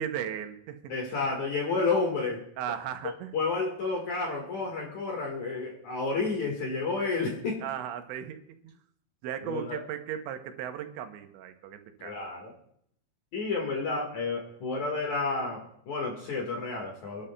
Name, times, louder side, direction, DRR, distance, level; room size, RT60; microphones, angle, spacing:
voice 1, 0.0-0.9 2.6-3.3 7.6-8.4 9.2-12.1, right 9 dB, 85° right, 7 dB, 3.2 m, -36 dB
voice 2, 0.9-2.4 3.3-7.6 9.4-9.8 12.0-12.5 13.3-17.3, left 3 dB, 55° left, 0 dB, 2.3 m, -30 dB
26.0 x 12.5 x 2.2 m, 0.70 s
omnidirectional pair, 5.2 m